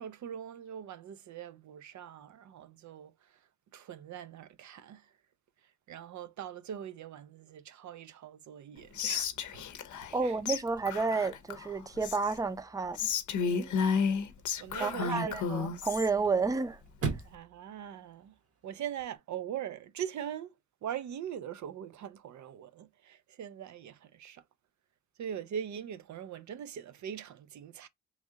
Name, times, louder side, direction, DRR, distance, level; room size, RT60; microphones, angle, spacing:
voice 1, 0.0-3.4 3.7-5.1 5.9-9.3 10.2-10.6 13.4-14.0 14.6-15.4 17.2-18.3 18.6-20.5 20.8-24.4 25.2-27.9, right 9 dB, 75° right, 0.5 m, -42 dB
Whispering, 9.0-10.2 10.5-10.6 10.9-12.4 12.9-16.1, left 6 dB, 85° left, 0.6 m, -32 dB
Chirp tweet / Car / Slam, 9.2-19.2, right 5 dB, 55° right, 0.9 m, -45 dB
voice 2, 10.1-13.1 14.8-16.8, right 4 dB, 10° right, 0.5 m, -31 dB
3.1 x 2.7 x 3.5 m
cardioid pair, 90°, 29 cm